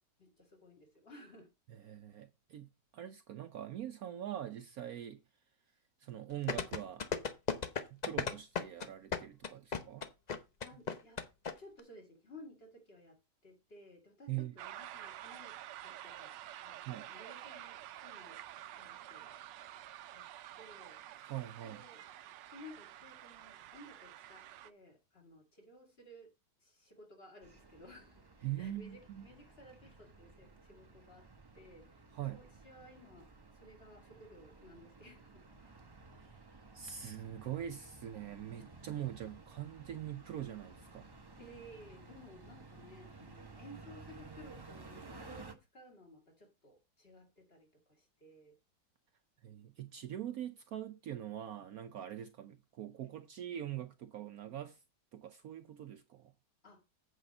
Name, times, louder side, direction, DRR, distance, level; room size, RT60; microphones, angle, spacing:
voice 1, 0.2-1.5 9.8-9.9 10.6-11.2 11.6-18.4 18.8-19.5 20.1-20.3 20.6-21.0 21.6-22.0 22.5-26.3 26.6-28.2 28.6-31.3 31.5-33.3 33.5-35.8 41.4-48.6 56.6-56.8, left 1 dB, 35° left, 2.2 m, -57 dB
voice 2, 1.7-5.2 6.0-7.0 7.9-10.1 10.7-10.8 14.3-14.5 16.9-17.1 21.2-21.8 28.4-29.3 32.1-32.5 36.2-36.5 36.7-41.1 49.4-54.8 55.1-56.3, right 11 dB, 65° right, 1.0 m, -43 dB
sound 1, 6.5-11.5 11.8-11.9, left 6 dB, 75° left, 0.4 m, -35 dB
sound 2, 14.6-24.7, right 13 dB, 90° right, 1.3 m, -49 dB
sound 3, 27.4-45.5, right 3 dB, 25° right, 0.5 m, -55 dB
8.3 x 5.1 x 5.3 m
omnidirectional pair, 1.9 m